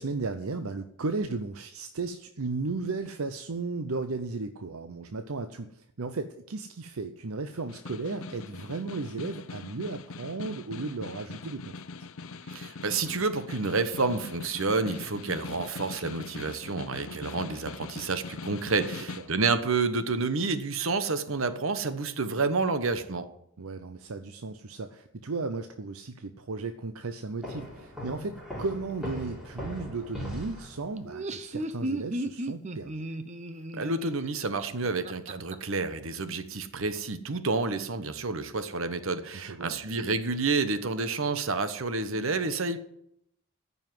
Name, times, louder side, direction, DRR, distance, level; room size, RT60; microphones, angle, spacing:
voice 1, 0.0-11.7 23.6-33.1 39.3-39.8, right 3 dB, 80° right, 8 dB, 0.7 m, -35 dB
Snare drum, 7.5-19.4, left 4 dB, 65° left, 0.7 m, -42 dB
voice 2, 12.5-23.3 33.7-42.8, right 3 dB, 65° right, 11 dB, 1.1 m, -29 dB
sound 1, 27.4-31.1, equal, 5° right, 4.1 m, -39 dB
Laughter, 31.0-35.5, right 1 dB, 30° right, 0.8 m, -35 dB
14.0 x 5.6 x 9.4 m, 0.74 s
head